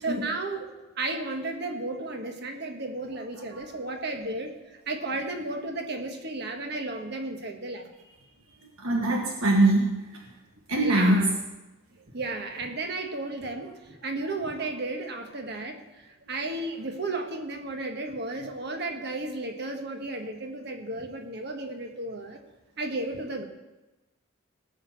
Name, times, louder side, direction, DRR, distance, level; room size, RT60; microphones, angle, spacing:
voice 1, 0.0-0.7 1.0-4.5 4.9-7.9 10.8-11.3 12.1-22.4 22.8-23.5, right 2 dB, 50° right, 4 dB, 1.4 m, -33 dB
voice 2, 8.6-10.2 10.7-11.3, right 1 dB, 80° right, 0 dB, 1.6 m, -23 dB
17.5 x 6.2 x 7.3 m, 1.1 s
head